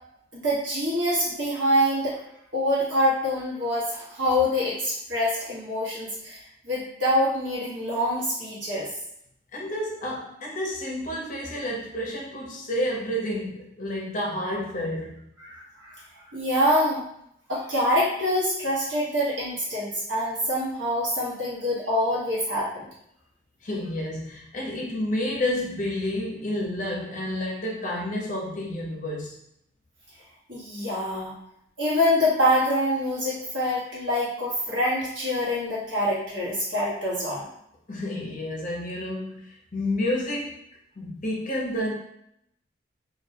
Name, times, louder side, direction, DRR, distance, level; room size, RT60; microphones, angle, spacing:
voice 1, 0.3-2.2 2.5-8.9 15.4-16.0 16.3-17.0 17.5-22.9 30.5-31.3 31.8-37.4, equal, 75° right, -7 dB, 1.2 m, -25 dB
voice 2, 9.5-15.3 23.6-29.4 37.9-40.6 41.0-41.9, left 1 dB, 40° left, -2 dB, 0.6 m, -30 dB
2.6 x 2.1 x 2.8 m, 0.74 s
head